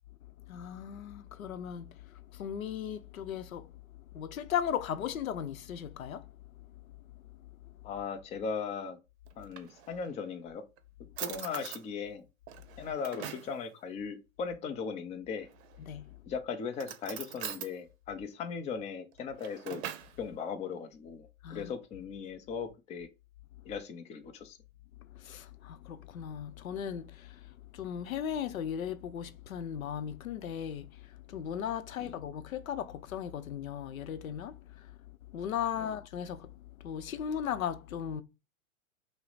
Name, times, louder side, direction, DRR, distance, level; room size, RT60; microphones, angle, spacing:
voice 1, 0.5-3.7 4.1-6.9 7.4-7.8 15.8-16.2 21.4-21.7 25.0-35.0 35.3-38.2, left 9 dB, 80° left, 0.7 m, -37 dB
voice 2, 7.8-9.0 9.4-10.6 11.2-12.2 12.8-15.5 16.3-19.8 20.2-23.1 23.6-24.6 32.0-32.2 35.8-35.9, left 6 dB, 15° left, 0.5 m, -38 dB
Drawer open or close, 9.3-10.2 10.8-10.9 11.2-11.8 12.5-13.6 15.4-16.0 16.7-17.7 19.1-20.2, right 10 dB, 55° right, 0.7 m, -42 dB
5.6 x 2.1 x 3.9 m
hypercardioid pair, 115°, 41 cm